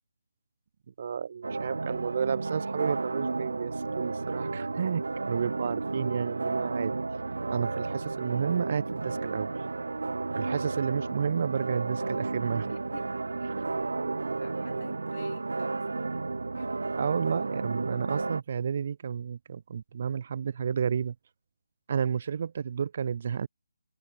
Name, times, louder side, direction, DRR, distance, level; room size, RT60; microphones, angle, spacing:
voice 1, 1.0-7.0 7.5-9.5 10.4-12.7 13.4-13.5 17.0-21.1 21.9-23.5, right 7 dB, 40° right, 0.7 m, -31 dB
sound 1, 1.4-18.4, right 3 dB, 80° right, 0.5 m, -32 dB
voice 2, 12.7-13.2 14.4-16.2 16.6-16.7 22.1-22.2, left 7 dB, 40° left, 2.0 m, -50 dB
hypercardioid pair, 165°, 0 cm